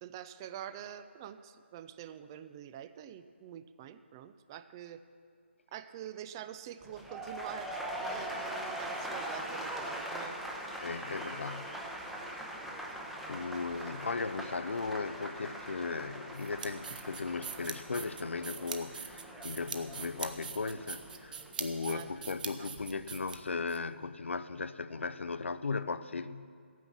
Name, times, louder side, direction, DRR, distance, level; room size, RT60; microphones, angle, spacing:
voice 1, 0.0-5.0 5.7-10.4 21.8-22.1 22.6-22.7, right 10 dB, 20° right, 12 dB, 0.3 m, -46 dB
sound 1, 6.8-22.9 23.2-23.6, right 1 dB, ahead, 0.8 m, -42 dB
voice 2, 10.8-12.5 13.3-26.5, left 4 dB, 75° left, 14 dB, 0.5 m, -37 dB
sound 2, 16.3-23.8, right 7 dB, 45° right, 0.8 m, -43 dB
13.5 x 9.2 x 6.0 m, 2.3 s
figure-of-eight pair, 150°, 7 cm